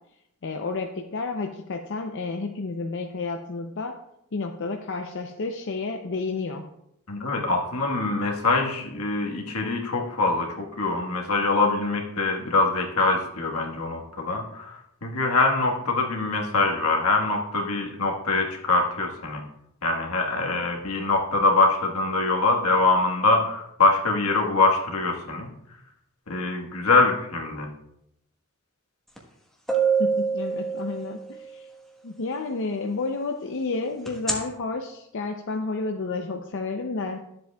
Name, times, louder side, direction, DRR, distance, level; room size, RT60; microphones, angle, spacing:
voice 1, 0.4-3.9 4.3-6.6 30.0-31.7 32.0-37.2, left 3 dB, 60° left, 3 dB, 0.6 m, -31 dB
voice 2, 7.1-19.4 19.8-25.5 26.3-27.7, left 3 dB, 85° left, 1 dB, 1.5 m, -24 dB
sound 1, 29.2-29.3 29.7-31.4 34.1-34.3, right 5 dB, ahead, 1.2 m, -24 dB
12.5 x 7.6 x 2.3 m, 0.80 s
head